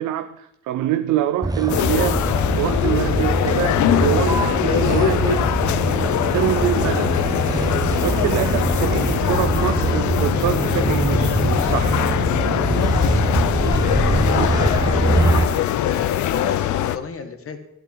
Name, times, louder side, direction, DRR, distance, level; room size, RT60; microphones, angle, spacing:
voice 1, 0.0-5.5 5.9-7.2 8.0-12.1 14.4-14.5, right 12 dB, 85° right, 0.6 m, -25 dB
Motor vehicle (road), 1.4-15.5, right 2 dB, 10° right, 0.9 m, -22 dB
sound 1, 1.7-17.0, left 12 dB, 70° left, 0.6 m, -22 dB
voice 2, 14.1-17.6, left 6 dB, 45° left, 1.6 m, -31 dB
13.0 x 11.0 x 3.9 m
cardioid pair, 90°, 30 cm